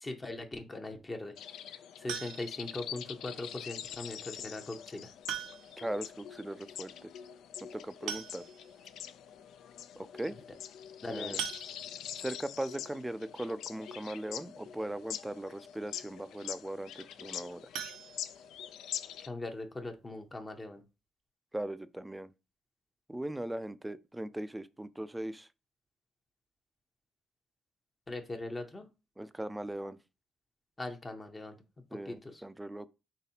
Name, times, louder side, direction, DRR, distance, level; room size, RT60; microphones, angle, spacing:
voice 1, 0.0-1.3 2.0-5.1 11.0-11.4 19.2-20.8 28.1-28.9 30.8-31.6 31.9-32.4, left 2 dB, 25° left, 0.7 m, -40 dB
sound 1, 1.4-19.3, left 9 dB, 80° left, 0.3 m, -44 dB
sound 2, 2.1-2.7 4.2-4.3 5.3-5.9 6.2-6.3 6.6-6.7 7.7-7.8 8.1-8.8 9.3-9.4 9.8-10.0 11.4-12.2 17.7-18.9 19.3-19.4 19.8-19.9 20.3-20.4, right 8 dB, 85° right, 0.5 m, -41 dB
voice 2, 5.8-7.1 7.7-8.5 10.0-10.4 11.1-11.4 12.2-17.6 21.5-22.3 23.1-25.5 29.2-30.0 31.9-32.9, right 1 dB, 10° right, 0.4 m, -39 dB
4.0 x 3.2 x 2.8 m
cardioid pair, 90°, 0 cm